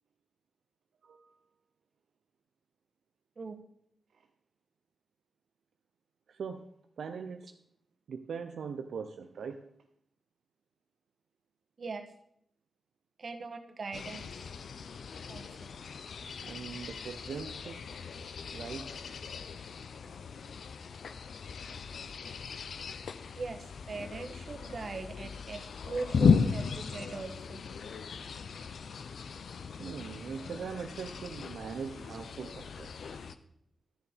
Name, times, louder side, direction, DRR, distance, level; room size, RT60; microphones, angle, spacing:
voice 1, 6.3-6.7 7.0-7.5 8.1-9.6 16.4-17.8 18.5-18.9 26.4-26.5 29.8-32.9, right 6 dB, 85° right, 6 dB, 0.6 m, -41 dB
voice 2, 13.2-14.3 15.3-15.5 23.4-27.6, right 4 dB, 50° right, 6 dB, 1.3 m, -40 dB
sound 1, 13.9-33.4, left 6 dB, 75° left, 0.6 m, -36 dB
12.0 x 7.0 x 5.1 m, 0.70 s
cardioid pair, 85°, 0 cm